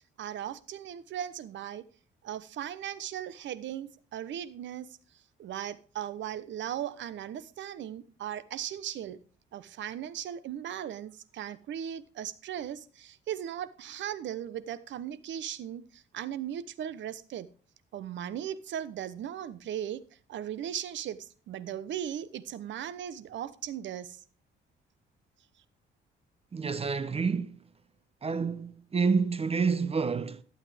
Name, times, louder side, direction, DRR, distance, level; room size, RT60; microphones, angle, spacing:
voice 1, 0.2-1.8 2.2-4.9 5.4-9.2 9.5-17.5 17.9-20.0 20.3-24.2, right 10 dB, 70° right, 0.8 m, -37 dB
voice 2, 26.5-27.6 28.2-30.4, right 5 dB, 30° right, 0.7 m, -28 dB
12.0 x 8.3 x 3.4 m
cardioid pair, 90°, 20 cm